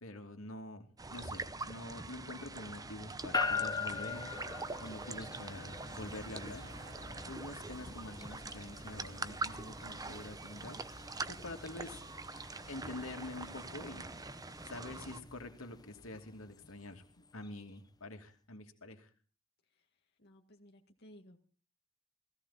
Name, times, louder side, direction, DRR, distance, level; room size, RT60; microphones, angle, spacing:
voice 1, 0.0-4.3 4.8-6.7 7.3-10.8 11.3-12.0 12.7-14.1 14.6-17.0 17.3-19.1, left 2 dB, 85° left, 4 dB, 2.7 m, -46 dB
sound 1, 1.0-15.2, right 3 dB, 20° right, 0.8 m, -44 dB
sound 2, 1.4-10.2, right 1 dB, 70° right, 2.5 m, -57 dB
sound 3, 3.3-17.6, left 5 dB, 20° left, 0.9 m, -43 dB
voice 2, 20.2-21.4, equal, 50° left, 2 dB, 2.0 m, -58 dB
16.5 x 16.5 x 4.2 m, 0.38 s
head